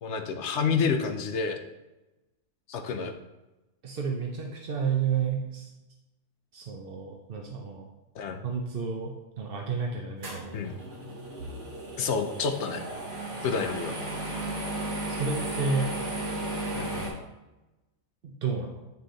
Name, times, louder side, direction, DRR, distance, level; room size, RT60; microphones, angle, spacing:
voice 1, 0.0-1.6 2.7-3.1 8.2-8.4 10.5-10.7 12.0-12.8 13.4-13.9 16.7-17.0, left 5 dB, 60° left, 5 dB, 0.8 m, -29 dB
voice 2, 3.8-5.7 6.5-7.9 8.4-10.6 15.1-15.9 18.2-18.9, right 5 dB, 55° right, 1 dB, 0.6 m, -31 dB
sound 1, 10.2-17.1, right 1 dB, 90° right, 2.2 m, -34 dB
9.2 x 3.4 x 3.8 m, 1.0 s
omnidirectional pair, 1.7 m